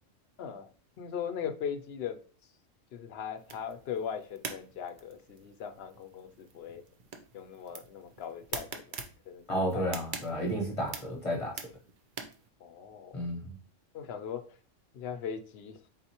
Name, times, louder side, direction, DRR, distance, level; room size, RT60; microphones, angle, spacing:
voice 1, 0.4-0.7 1.0-2.2 2.9-6.8 7.3-9.0 9.3-9.8 12.6-13.3 13.9-14.4 14.9-15.8, left 8 dB, 65° left, 0.7 m, -39 dB
sound 1, 3.4-12.5, right 5 dB, 50° right, 0.6 m, -45 dB
voice 2, 9.5-11.6 13.1-13.6, equal, 30° left, 0.8 m, -32 dB
4.2 x 4.0 x 2.8 m
omnidirectional pair, 1.3 m